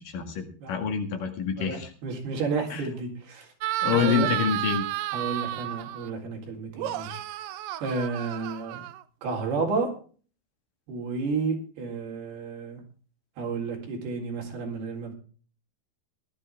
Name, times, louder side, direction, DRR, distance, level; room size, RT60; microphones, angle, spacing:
voice 1, 0.0-1.9 2.7-2.8 3.8-4.9, left 7 dB, 55° left, 6 dB, 3.4 m, -27 dB
voice 2, 1.6-3.5 3.9-4.3 5.1-7.2 7.8-8.8 9.2-9.9 10.9-12.8 13.4-15.1, right 4 dB, 65° right, 0 dB, 5.7 m, -31 dB
sound 1, 3.6-6.1 6.8-9.3, right 14 dB, 85° right, 1.9 m, -32 dB
17.5 x 12.0 x 3.5 m, 0.40 s
omnidirectional pair, 4.8 m